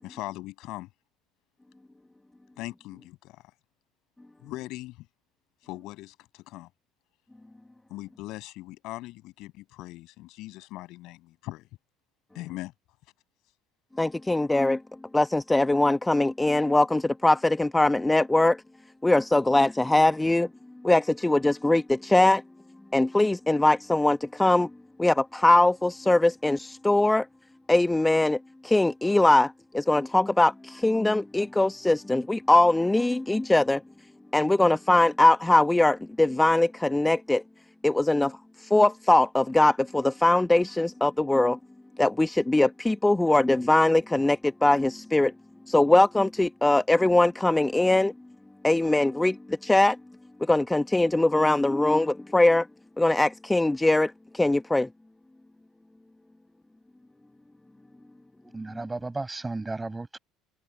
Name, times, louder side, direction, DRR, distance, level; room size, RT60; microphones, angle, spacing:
voice 1, 0.0-0.9 2.6-3.4 4.4-5.1 5.6-6.7 7.9-11.7 12.3-12.7, left 18 dB, 55° left, 7.8 m, -40 dB
voice 2, 14.0-14.8 15.1-18.6 19.0-20.5 20.8-22.4 22.9-24.7 25.0-27.3 27.7-33.8 34.3-37.4 37.8-41.6 42.0-45.3 45.7-48.1 48.6-50.0 50.4-52.7 53.0-54.9, left 2 dB, 10° left, 1.1 m, -22 dB
voice 3, 58.5-60.2, right 3 dB, 15° right, 5.3 m, -34 dB
figure-of-eight pair, 60°, 0 cm